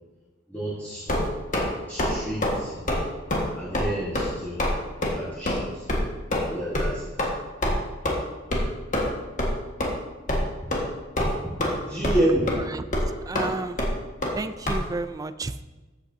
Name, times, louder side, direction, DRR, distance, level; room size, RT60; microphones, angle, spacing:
voice 1, 0.5-1.2 1.9-2.8 3.6-4.7 5.1-5.9 6.5-7.1 10.6-10.7 11.8-12.6, right 1 dB, 10° left, -7 dB, 1.6 m, -29 dB
sound 1, 1.1-1.7 2.0-2.1 2.4-2.6 2.9-3.0 3.3-3.4 3.7-3.9 4.1-4.3 4.6-4.7 5.0-5.1 5.5-5.6 5.9-6.0 6.3-6.5 6.7-6.9 7.2-7.3 7.6-7.7 8.0-8.1 8.5-8.7 8.9-9.1 9.4-9.5 9.8-9.9 10.3-10.4 10.7-10.9 11.2-11.7 12.0-12.2 12.5-12.6 12.9-13.1 13.3-13.5 13.8-13.9 14.2-14.3 14.7-14.8, left 1 dB, 40° left, 1.6 m, -24 dB
voice 2, 13.3-13.8 14.4-15.6, right 3 dB, 20° right, 12 dB, 0.3 m, -32 dB
13.5 x 8.3 x 2.7 m, 1.2 s
head